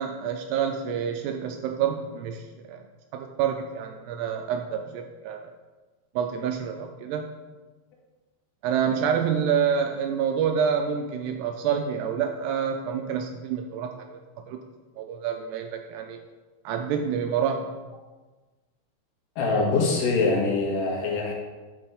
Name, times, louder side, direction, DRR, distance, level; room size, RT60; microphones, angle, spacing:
voice 1, 0.0-2.4 2.7-2.8 3.1-5.5 6.2-7.3 8.6-14.2 14.5-14.6 15.0-16.2 16.7-17.7, right 7 dB, 80° right, 5 dB, 2.5 m, -27 dB
voice 2, 19.4-21.3, left 3 dB, 75° left, -1 dB, 3.5 m, -24 dB
11.0 x 6.8 x 3.6 m, 1.3 s
omnidirectional pair, 5.1 m